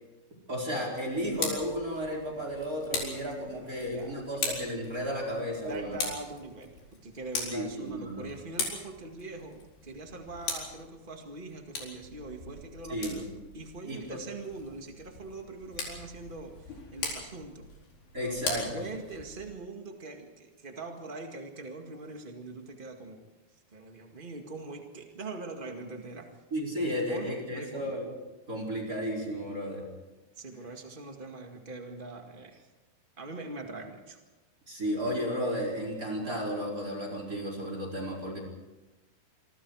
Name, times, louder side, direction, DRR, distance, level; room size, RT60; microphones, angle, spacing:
voice 1, 0.5-6.0 7.5-8.3 12.9-13.2 13.9-14.2 18.1-18.9 26.5-28.1 28.5-29.9 34.7-38.4, equal, 20° right, 1 dB, 4.7 m, -33 dB
Tick, 1.1-19.5, left 4 dB, 80° left, 6.5 m, -40 dB
voice 2, 3.4-4.2 5.5-13.2 13.5-17.6 18.2-23.2 23.5-26.3 26.8-27.9 30.3-32.7 33.2-34.2, right 3 dB, 75° right, 3 dB, 0.4 m, -42 dB
27.0 x 24.0 x 4.8 m, 1.1 s
omnidirectional pair, 4.6 m